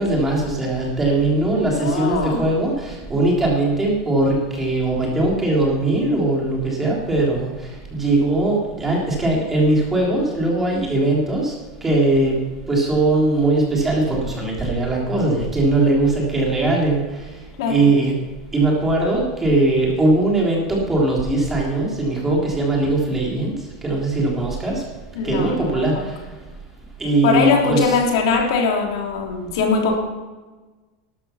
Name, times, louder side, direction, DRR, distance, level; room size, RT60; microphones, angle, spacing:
voice 1, 0.0-11.5 11.8-12.4 12.7-17.3 17.7-18.1 18.5-23.5 23.8-24.8 25.2-26.2 27.0-28.0, right 2 dB, 10° right, -2 dB, 3.5 m, -20 dB
voice 2, 1.6-2.5 17.6-17.8 25.1-26.1 27.2-30.0, left 4 dB, 75° left, 0 dB, 3.3 m, -21 dB
12.5 x 12.0 x 5.8 m, 1.2 s
supercardioid pair, 160°, 2 cm